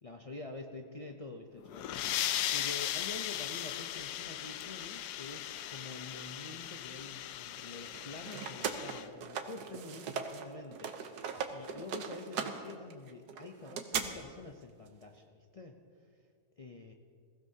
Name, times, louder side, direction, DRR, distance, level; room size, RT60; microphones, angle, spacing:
voice 1, 0.0-2.1 2.5-15.8 16.6-16.9, left 3 dB, 55° left, 2 dB, 0.4 m, -47 dB
sound 1, 1.6-9.1, left 12 dB, 90° left, 1.1 m, -38 dB
sound 2, 7.9-10.5 10.7-14.0, right 7 dB, 85° right, 1.5 m, -38 dB
21.0 x 15.5 x 2.8 m, 2.2 s
omnidirectional pair, 1.7 m